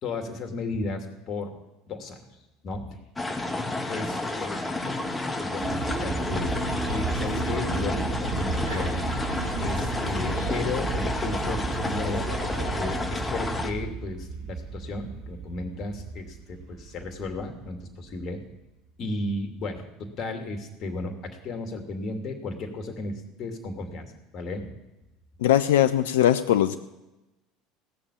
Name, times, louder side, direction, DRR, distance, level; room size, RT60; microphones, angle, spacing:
voice 1, 0.0-1.5 1.9-2.2 2.6-3.0 3.9-6.6 6.9-9.0 9.6-12.3 12.7-18.4 19.0-24.1 24.3-24.7, left 2 dB, 45° left, 5 dB, 2.7 m, -34 dB
sound 1, 3.2-13.7, left 2 dB, 15° left, 2.0 m, -31 dB
sound 2, 5.6-18.5, right 5 dB, 60° right, 1.5 m, -35 dB
sound 3, 6.2-13.0, equal, 85° right, 6.3 m, -35 dB
voice 2, 25.4-26.8, left 12 dB, 75° left, 10 dB, 0.6 m, -20 dB
17.0 x 7.0 x 8.6 m, 0.99 s
hypercardioid pair, 70°, 0 cm